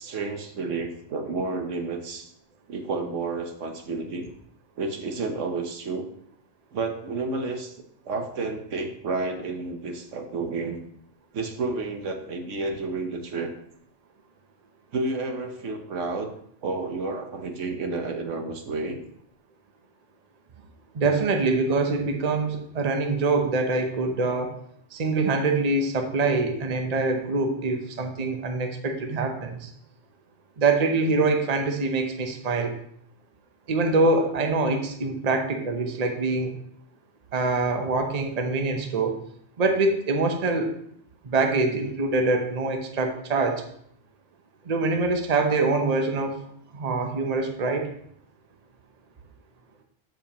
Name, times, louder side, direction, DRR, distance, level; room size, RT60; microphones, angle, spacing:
voice 1, 0.0-2.3 2.7-4.3 4.8-6.1 6.7-7.7 8.0-10.8 11.3-13.5 14.9-16.3 16.6-19.0, right 3 dB, 75° right, 5 dB, 1.3 m, -30 dB
voice 2, 20.9-24.6 24.9-29.7 30.6-32.7 33.7-36.5 37.3-39.2 39.6-40.7 41.2-43.6 44.6-46.4 46.7-47.9, right 3 dB, 35° right, 4 dB, 0.8 m, -24 dB
13.5 x 5.2 x 2.9 m, 0.68 s
omnidirectional pair, 1.3 m